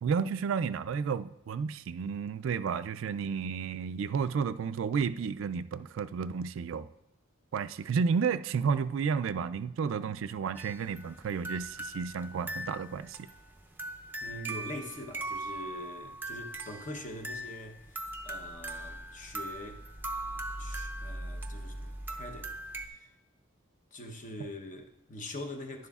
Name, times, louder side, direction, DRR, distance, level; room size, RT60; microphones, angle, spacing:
voice 1, 0.0-6.9 7.5-13.3, right 6 dB, 70° right, 0.3 m, -32 dB
sound 1, 10.5-22.9, right 1 dB, 10° right, 0.5 m, -40 dB
voice 2, 14.2-19.8 20.6-22.5 22.8-23.1 23.9-25.9, left 1 dB, 40° left, 0.9 m, -43 dB
11.0 x 10.5 x 2.4 m
head